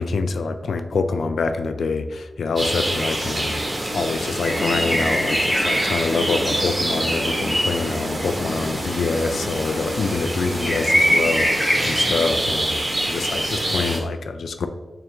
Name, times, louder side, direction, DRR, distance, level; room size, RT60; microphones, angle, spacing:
voice 1, 0.0-3.6 3.9-14.7, left 4 dB, 80° left, 8 dB, 0.3 m, -25 dB
sound 1, 2.6-14.0, right 1 dB, 30° right, 1.0 m, -26 dB
sound 2, 4.4-12.3, equal, ahead, 0.9 m, -25 dB
3.4 x 2.5 x 4.3 m, 1.1 s
wide cardioid pair, 130°, 0 cm